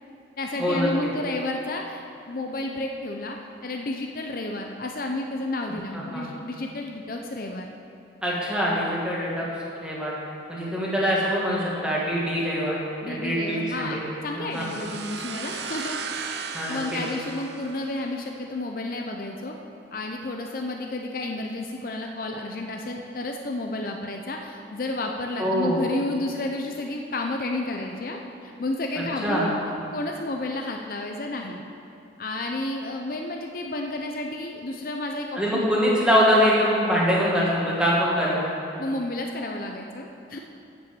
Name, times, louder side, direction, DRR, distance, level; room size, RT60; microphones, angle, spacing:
voice 1, 0.4-7.7 13.0-16.4 16.7-19.6 19.9-29.5 29.9-31.6 32.2-35.6 38.8-40.4, left 2 dB, 50° left, 2 dB, 0.6 m, -31 dB
voice 2, 8.2-9.5 9.8-10.1 10.5-14.1 14.4-14.7 16.5-16.8 25.4-25.8 29.2-29.5 35.3-38.5, equal, 5° right, -6 dB, 1.8 m, -23 dB
sound 1, 14.5-18.3, right 5 dB, 70° right, 0.6 m, -36 dB
7.6 x 7.0 x 7.6 m, 2.7 s
head